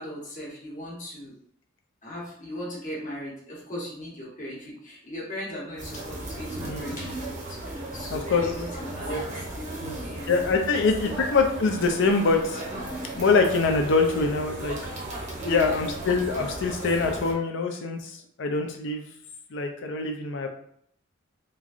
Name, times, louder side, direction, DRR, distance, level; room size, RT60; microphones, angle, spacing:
voice 1, 0.0-1.3 2.0-11.4 15.4-16.0 20.4-20.5, left 1 dB, 40° left, -5 dB, 1.0 m, -38 dB
sound 1, 5.8-17.3, right 1 dB, 40° right, 0.7 m, -36 dB
voice 2, 8.1-8.4 9.1-9.3 9.8-10.0 10.3-12.6 13.2-14.8 15.5-18.1 18.4-19.1 19.5-20.5, left 4 dB, 65° left, 4 dB, 0.5 m, -24 dB
3.0 x 2.5 x 2.4 m, 0.67 s
head